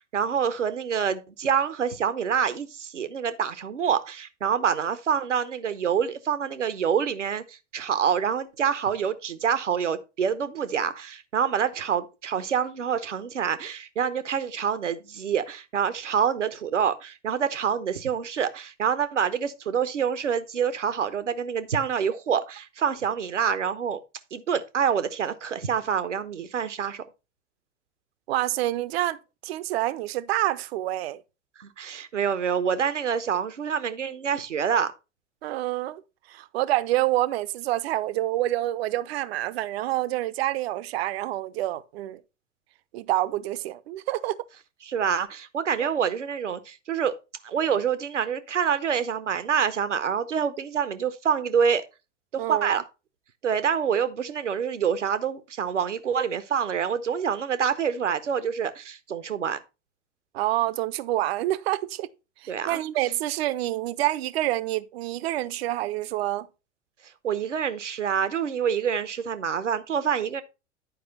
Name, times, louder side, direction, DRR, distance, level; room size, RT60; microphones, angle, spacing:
voice 1, 0.1-24.0 24.3-27.0 31.6-34.9 44.8-47.2 47.4-51.8 52.3-52.8 53.4-59.6 62.5-62.8 67.2-70.4, right 7 dB, 80° right, 0.9 m, -26 dB
voice 2, 28.3-31.2 35.4-36.0 36.3-42.2 42.9-44.4 45.8-45.9 52.4-52.7 60.3-62.1 62.4-66.5, right 15 dB, 55° right, 0.7 m, -27 dB
10.0 x 4.9 x 4.2 m
figure-of-eight pair, 80°, 36 cm